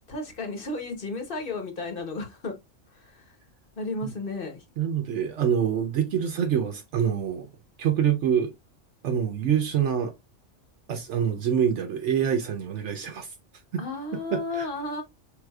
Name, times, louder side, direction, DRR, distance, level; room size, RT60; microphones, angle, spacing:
voice 1, 0.1-2.6 2.9-3.4 3.7-4.6 13.8-15.0, left 3 dB, 50° left, 1.2 m, -33 dB
voice 2, 4.8-7.5 7.8-8.5 9.0-10.1 10.9-13.3 13.7-13.8 14.3-14.7, right 8 dB, 75° right, 0.9 m, -25 dB
4.8 x 3.4 x 2.3 m
omnidirectional pair, 1.3 m